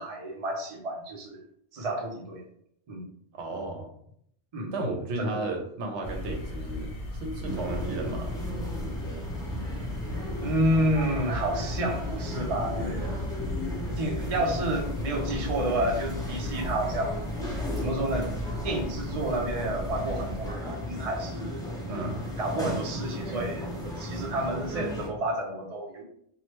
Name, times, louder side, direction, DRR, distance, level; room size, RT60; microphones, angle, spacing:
voice 1, 0.0-1.4 1.7-2.4 2.9-3.0 4.5-4.7 5.2-5.4 10.4-13.2 14.0-17.1 17.8-18.3 18.6-22.1 22.4-26.0, right 1 dB, 40° right, -1 dB, 0.6 m, -30 dB
voice 2, 3.3-3.9 4.7-8.4 21.9-22.2, right 2 dB, 80° right, 2 dB, 1.0 m, -33 dB
sound 1, 6.0-20.5, left 1 dB, 60° left, 0.9 m, -36 dB
sound 2, 7.5-25.1, left 1 dB, 5° left, 0.7 m, -35 dB
3.0 x 2.3 x 2.9 m, 0.69 s
omnidirectional pair, 1.1 m